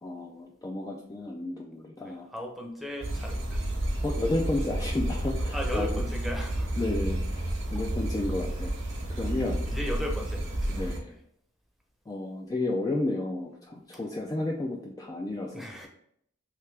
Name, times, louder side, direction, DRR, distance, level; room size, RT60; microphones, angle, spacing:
voice 1, 0.0-2.3 4.0-5.9 6.8-8.8 9.1-9.6 10.7-11.1 12.1-15.9, left 2 dB, 20° left, -1 dB, 0.3 m, -32 dB
voice 2, 2.0-3.6 5.5-6.8 9.4-11.1 15.5-15.9, left 1 dB, ahead, 0 dB, 0.7 m, -37 dB
sound 1, 3.0-11.0, right 1 dB, 65° right, 0.9 m, -31 dB
3.3 x 2.8 x 3.2 m, 0.71 s
head